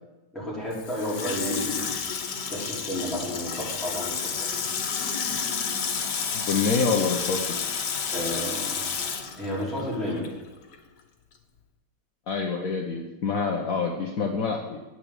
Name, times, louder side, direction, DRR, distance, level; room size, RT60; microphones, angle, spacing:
voice 1, 0.3-1.9 2.5-4.6 8.1-8.8 9.4-10.2, equal, ahead, -7 dB, 4.8 m, -32 dB
Water tap faucet / Sink (filling or washing), 0.7-10.4 10.7-10.8, left 6 dB, 90° left, 1.8 m, -31 dB
voice 2, 6.3-7.5 12.3-14.8, left 4 dB, 55° left, 1 dB, 1.4 m, -26 dB
9.9 x 8.7 x 8.2 m, 1.1 s
omnidirectional pair, 1.8 m